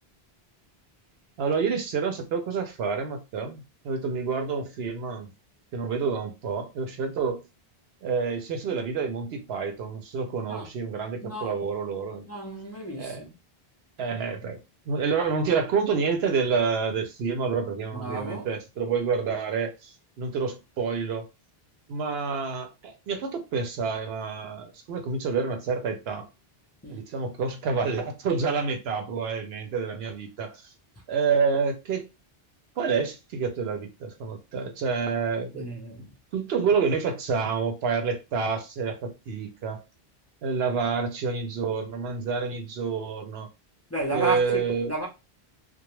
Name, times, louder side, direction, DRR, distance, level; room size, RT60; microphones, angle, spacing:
voice 1, 1.4-5.3 5.7-7.4 8.0-12.3 13.0-13.2 14.0-14.6 14.9-21.3 21.9-26.3 26.9-30.7 31.1-32.1 32.8-35.7 36.3-39.8 40.4-43.5 44.1-44.9, right 5 dB, 80° right, 0.9 m, -28 dB
voice 2, 11.2-11.5 12.3-13.3 17.9-18.5 26.8-27.0 35.5-36.1 43.9-44.6 44.9-45.1, right 2 dB, 20° left, 0.5 m, -32 dB
2.3 x 2.1 x 3.0 m
omnidirectional pair, 1.0 m